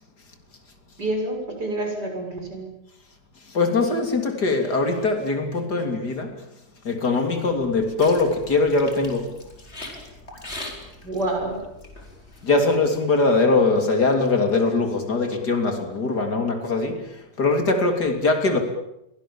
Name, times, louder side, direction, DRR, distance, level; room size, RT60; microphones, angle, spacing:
voice 1, 1.0-2.7 7.6-7.7 11.0-11.6, right 1 dB, 55° right, 7.5 m, -28 dB
voice 2, 3.5-6.4 6.8-9.3 12.4-18.6, left 3 dB, 55° left, 3.7 m, -22 dB
sound 1, 7.5-12.6, left 2 dB, 35° left, 4.7 m, -41 dB
29.5 x 24.0 x 7.3 m
omnidirectional pair, 2.1 m